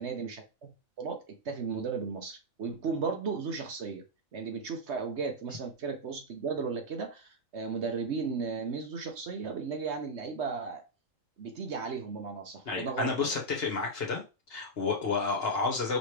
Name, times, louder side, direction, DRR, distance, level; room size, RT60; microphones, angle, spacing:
voice 1, 0.0-4.0 4.3-10.8 11.4-13.3, right 5 dB, 60° right, 1.0 m, -35 dB
voice 2, 12.7-14.2 14.5-16.0, left 4 dB, 50° left, 1.2 m, -30 dB
5.1 x 3.1 x 3.2 m
omnidirectional pair, 1.4 m